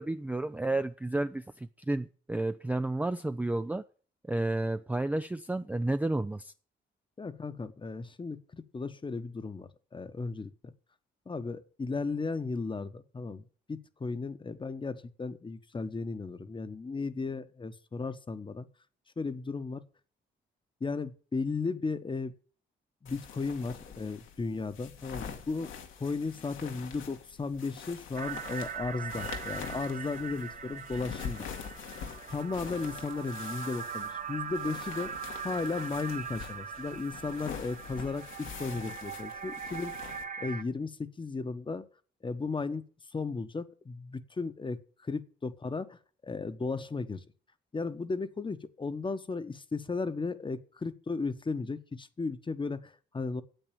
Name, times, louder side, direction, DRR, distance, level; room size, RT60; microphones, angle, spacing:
voice 1, 0.0-3.8 4.3-6.5, right 2 dB, 10° right, 0.5 m, -31 dB
voice 2, 7.2-10.5 11.3-13.4 13.7-18.7 19.2-19.8 20.8-22.3 23.0-25.7 26.0-31.5 32.3-35.1 35.4-39.9 40.4-41.9 42.2-42.8 43.1-47.2 47.7-53.4, left 4 dB, 25° left, 1.1 m, -35 dB
sound 1, 23.1-40.2, left 7 dB, 80° left, 2.1 m, -45 dB
sound 2, 28.2-40.6, right 7 dB, 40° right, 0.8 m, -41 dB
9.1 x 8.0 x 8.9 m
cardioid pair, 90°, 20 cm